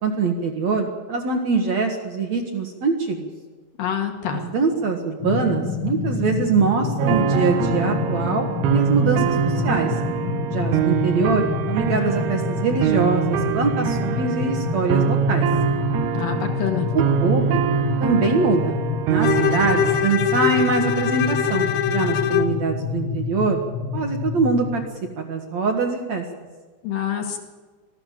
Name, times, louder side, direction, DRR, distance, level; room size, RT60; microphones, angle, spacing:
voice 1, 0.0-3.3 4.3-9.9 10.5-15.5 16.9-18.8 19.1-23.6 23.9-24.8 25.2-26.2, right 4 dB, 55° right, 3 dB, 2.4 m, -23 dB
voice 2, 3.8-4.4 16.1-16.9 26.8-27.4, left 9 dB, 60° left, 3 dB, 3.3 m, -26 dB
sound 1, 5.2-24.8, left 5 dB, 45° left, 1.6 m, -28 dB
sound 2, 7.0-20.1, right 9 dB, 75° right, 1.8 m, -24 dB
Bowed string instrument, 19.2-22.6, left 9 dB, 80° left, 3.1 m, -23 dB
24.0 x 15.5 x 7.6 m, 1.3 s
omnidirectional pair, 4.7 m